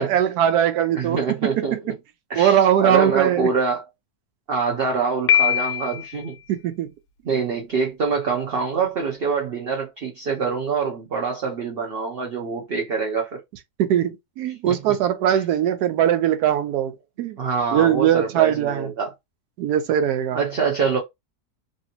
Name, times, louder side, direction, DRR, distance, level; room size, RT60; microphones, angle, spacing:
voice 1, 0.0-1.9 2.4-3.5 6.5-6.9 7.3-7.4 13.8-17.4 17.7-18.9 19.6-20.4, right 10 dB, 85° right, 1.1 m, -21 dB
voice 2, 0.9-1.9 2.3-3.8 4.5-6.4 7.3-13.4 14.7-15.0 15.3-15.4 17.4-19.1 20.3-21.0, right 5 dB, 55° right, 0.6 m, -25 dB
Piano, 5.3-6.2, left 10 dB, 90° left, 1.2 m, -21 dB
3.2 x 2.7 x 2.8 m
omnidirectional pair, 1.7 m